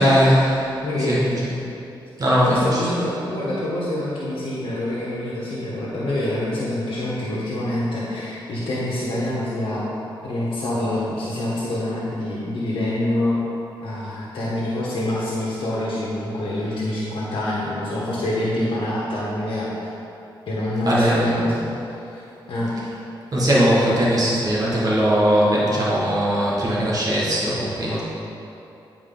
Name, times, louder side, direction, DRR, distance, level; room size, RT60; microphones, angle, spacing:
voice 1, 0.0-0.7 1.1-1.5 2.2-2.8 20.9-21.4 23.3-28.0, equal, 45° right, -7 dB, 1.7 m, -19 dB
voice 2, 0.8-1.2 2.4-9.9 10.2-13.4 13.8-19.7 20.5-21.6 22.1-22.2 22.5-22.7, left 1 dB, 75° left, -7 dB, 1.4 m, -26 dB
10.0 x 4.7 x 3.9 m, 2.8 s
wide cardioid pair, 115°, 9 cm